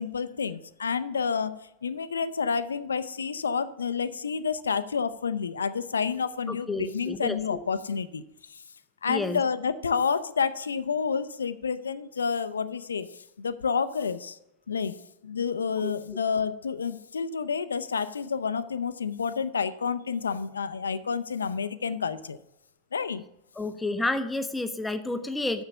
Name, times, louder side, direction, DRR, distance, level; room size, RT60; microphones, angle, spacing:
voice 1, 0.0-8.2 8.5-8.6 9.0-14.4 14.7-22.4 22.9-23.2, left 6 dB, 70° left, 14 dB, 0.4 m, -29 dB
voice 2, 6.5-7.4 9.1-9.4 15.8-15.9 23.6-25.6, left 2 dB, 5° left, 9 dB, 0.5 m, -30 dB
6.9 x 6.8 x 6.8 m, 0.86 s
figure-of-eight pair, 90°, 0 cm